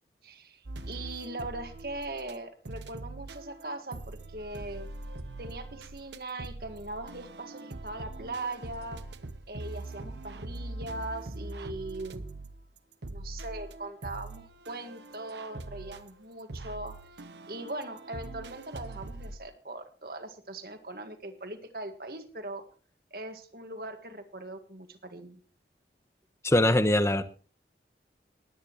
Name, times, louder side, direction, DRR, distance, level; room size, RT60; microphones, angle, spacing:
voice 1, 0.2-4.9 5.4-9.0 9.5-12.3 13.1-16.9 17.5-22.6 23.1-25.4, right 2 dB, 55° right, 7 dB, 1.8 m, -40 dB
sound 1, 0.7-2.4 2.7-19.4, right 2 dB, 85° right, 1.0 m, -42 dB
voice 2, 26.4-27.2, left 1 dB, 15° left, 11 dB, 0.9 m, -22 dB
20.0 x 9.5 x 3.1 m, 0.39 s
head